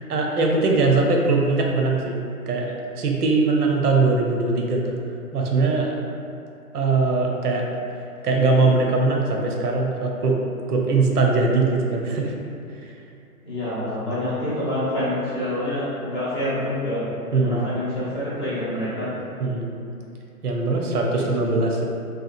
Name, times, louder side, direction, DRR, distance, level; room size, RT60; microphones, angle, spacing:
voice 1, 0.1-2.2 2.5-4.9 5.3-6.0 6.7-7.6 8.2-10.4 10.7-12.3 12.8-12.9 17.3-17.6 19.4-19.7 20.4-21.8, right 3 dB, 90° right, 0 dB, 0.6 m, -21 dB
voice 2, 13.4-17.0 17.4-19.1 21.1-21.3, left 1 dB, 20° left, -12 dB, 0.4 m, -27 dB
2.8 x 2.2 x 2.5 m, 2.6 s
hypercardioid pair, 130°, 45 cm